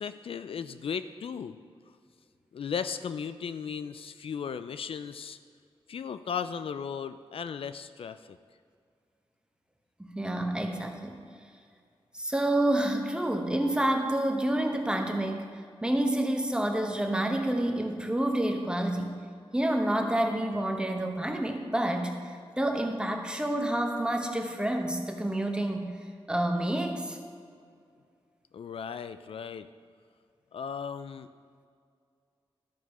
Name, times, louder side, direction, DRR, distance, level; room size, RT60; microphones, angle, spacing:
voice 1, 0.0-1.6 2.5-5.4 5.9-8.4 28.5-29.7 30.5-31.3, left 7 dB, 70° left, 12 dB, 0.3 m, -36 dB
voice 2, 10.0-11.2 12.1-19.1 19.5-25.9 26.3-27.2, right 1 dB, 10° right, 3 dB, 0.9 m, -28 dB
13.0 x 4.7 x 5.6 m, 2.2 s
wide cardioid pair, 150°, 10 cm